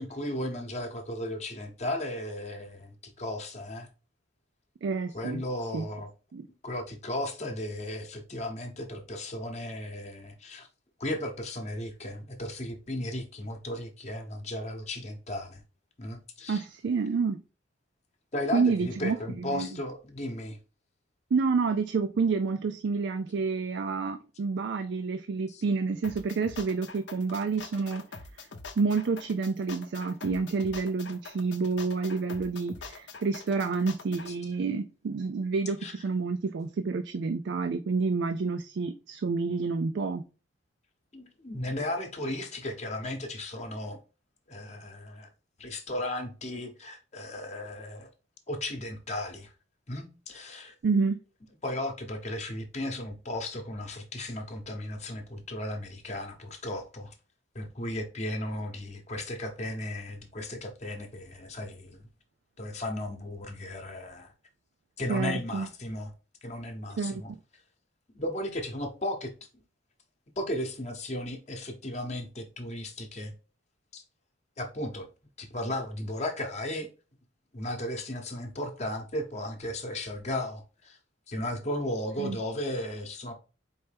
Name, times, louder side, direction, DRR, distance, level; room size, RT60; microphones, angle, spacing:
voice 1, 0.0-3.9 5.1-6.1 6.6-10.7 11.0-15.6 16.0-16.6 18.3-20.6 25.5-25.6 34.3-34.4 35.8-35.9 41.1-44.0 44.5-45.3 45.6-48.1 48.5-49.5 49.9-50.7 51.6-57.1 57.5-62.0 62.6-64.3 65.0-66.1 66.4-67.3 68.1-69.3 70.4-73.3 73.9-74.0 74.6-75.1 75.4-76.9 77.5-81.0 81.3-83.3, left 1 dB, 35° left, 0.9 m, -35 dB
voice 2, 4.8-5.4 5.7-5.9 6.3-6.5 16.5-17.4 18.5-19.7 21.3-28.0 28.4-28.5 28.8-40.2 50.8-51.2 65.1-65.7 67.0-67.2 82.2-82.4, right 4 dB, 65° right, 0.4 m, -29 dB
sound 1, 26.0-34.3, left 4 dB, 65° left, 0.6 m, -44 dB
4.5 x 3.2 x 3.3 m
head